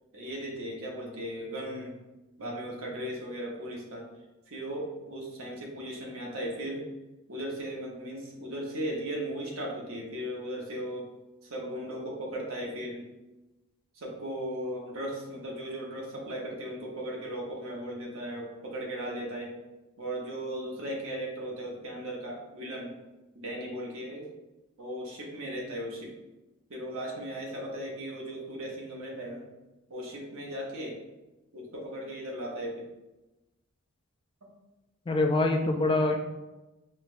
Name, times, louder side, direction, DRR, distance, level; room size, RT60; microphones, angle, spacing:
voice 1, 0.1-2.0 2.4-4.0 4.5-6.9 7.3-11.1 11.5-13.1 13.9-19.5 20.0-22.9 23.3-24.3 24.8-26.1 26.7-29.4 29.9-31.0 31.5-32.9 34.4-34.5, right 1 dB, 65° right, -2 dB, 0.9 m, -37 dB
voice 2, 35.1-36.2, left 2 dB, 20° left, 3 dB, 0.3 m, -24 dB
5.4 x 2.2 x 2.5 m, 1.0 s
head